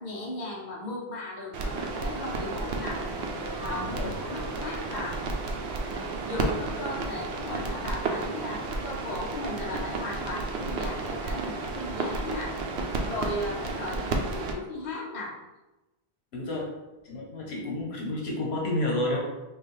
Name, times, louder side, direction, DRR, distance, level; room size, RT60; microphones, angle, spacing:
voice 1, 0.0-3.0 3.6-5.2 6.2-12.6 13.1-15.4, left 1 dB, 45° left, -3 dB, 0.9 m, -36 dB
sound 1, 1.5-14.5, right 3 dB, 80° right, 0.9 m, -32 dB
sound 2, 3.0-6.9, right 3 dB, 20° left, 0.7 m, -46 dB
voice 2, 3.8-4.1 16.3-16.7 17.0-19.2, left 1 dB, 80° left, -2 dB, 1.2 m, -30 dB
5.1 x 2.4 x 3.2 m, 1.0 s
omnidirectional pair, 1.1 m